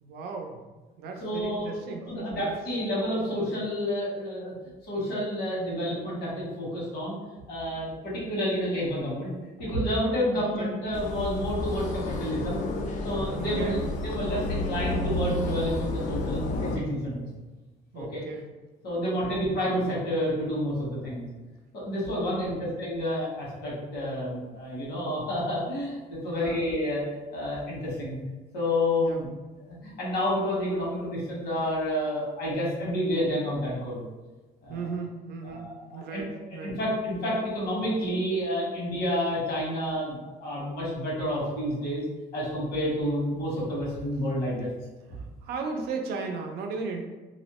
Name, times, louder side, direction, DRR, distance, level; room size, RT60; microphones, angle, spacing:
voice 1, 0.0-0.6 1.0-2.5 10.3-10.8 13.3-13.8 17.9-18.5 19.0-19.4 22.3-22.8 26.3-26.6 29.0-29.2 34.7-36.8 45.4-47.0, right 4 dB, 75° right, 3 dB, 0.5 m, -36 dB
voice 2, 1.2-4.5 4.8-7.2 7.5-9.3 9.6-12.6 13.0-13.8 14.0-17.2 17.9-18.2 18.8-21.2 21.7-28.2 28.5-29.3 29.7-34.0 34.6-34.9 35.4-36.2 36.6-42.0 42.3-44.7, equal, 80° left, -6 dB, 1.3 m, -29 dB
sound 1, 10.9-16.8, left 2 dB, 50° left, 0.4 m, -31 dB
2.6 x 2.0 x 2.9 m, 1.2 s
cardioid pair, 110°, 17 cm